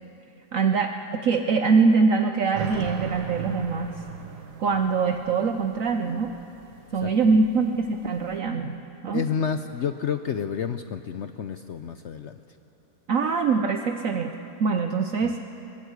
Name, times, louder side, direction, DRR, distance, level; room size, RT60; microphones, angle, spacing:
voice 1, 0.5-3.9 4.6-6.3 6.9-9.2 13.1-15.4, right 4 dB, 60° right, 6 dB, 1.1 m, -23 dB
sound 1, 2.5-8.4, right 7 dB, 90° right, 2.0 m, -39 dB
voice 2, 9.1-12.4 15.2-15.3, left 7 dB, 60° left, 9 dB, 0.8 m, -30 dB
22.0 x 20.0 x 8.1 m, 3.0 s
omnidirectional pair, 1.7 m